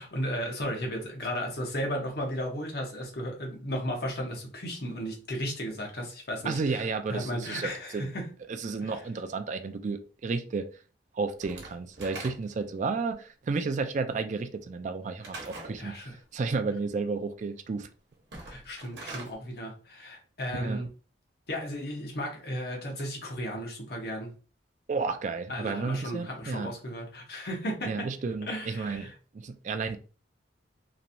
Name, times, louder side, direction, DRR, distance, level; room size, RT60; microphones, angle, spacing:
voice 1, 0.0-8.3 8.8-9.0 15.8-16.2 18.4-20.9 21.5-24.3 25.5-28.1 28.5-29.1, equal, 60° left, 1.0 m, -35 dB
voice 2, 6.4-8.1 8.5-10.7 11.1-15.9 16.3-17.9 20.5-20.9 24.9-26.7 27.9-30.0, right 4 dB, 45° right, 0.3 m, -32 dB
Slam / Wood, 11.4-12.7 15.2-15.8 18.2-19.3, right 3 dB, 70° right, 1.0 m, -42 dB
3.0 x 2.6 x 2.6 m
head